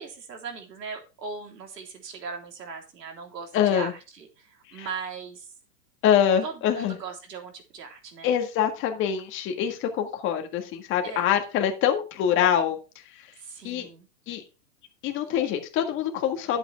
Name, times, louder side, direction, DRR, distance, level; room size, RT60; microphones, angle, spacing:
voice 1, 0.0-5.5 6.4-8.3 11.0-11.3 13.4-14.1, right 5 dB, 85° right, 3 dB, 3.7 m, -39 dB
voice 2, 3.5-3.9 4.7-4.9 6.0-6.9 8.2-12.8 13.6-13.9 14.3-14.4 15.0-16.6, left 9 dB, 25° left, 6 dB, 1.7 m, -24 dB
11.0 x 8.1 x 3.4 m, 0.30 s
hypercardioid pair, 145°, 48 cm